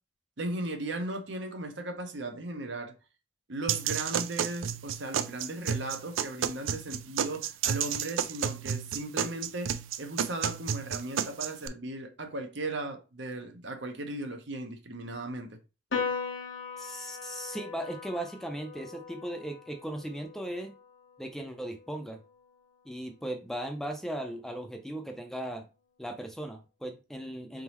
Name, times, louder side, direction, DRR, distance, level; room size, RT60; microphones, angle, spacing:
voice 1, 0.4-2.9 3.5-15.6, right 2 dB, 65° right, 0.9 m, -37 dB
sound 1, 3.7-11.7, right 8 dB, 80° right, 0.4 m, -32 dB
Piano, 15.9-22.6, left 5 dB, 70° left, 1.1 m, -39 dB
voice 2, 16.8-20.7 21.2-22.2 22.9-25.7 26.0-27.6, right 1 dB, ahead, 0.5 m, -37 dB
3.9 x 3.7 x 3.0 m
head